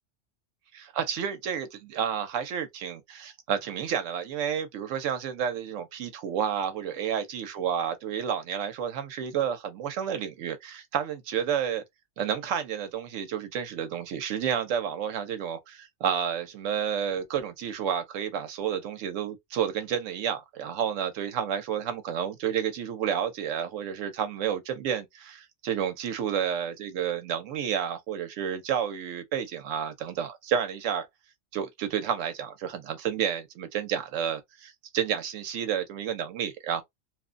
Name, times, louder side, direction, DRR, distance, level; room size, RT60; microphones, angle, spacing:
voice 1, 0.7-11.8 12.2-31.1 31.5-36.8, right 8 dB, 85° right, 1.0 m, -30 dB
2.9 x 2.1 x 2.5 m
omnidirectional pair, 1.3 m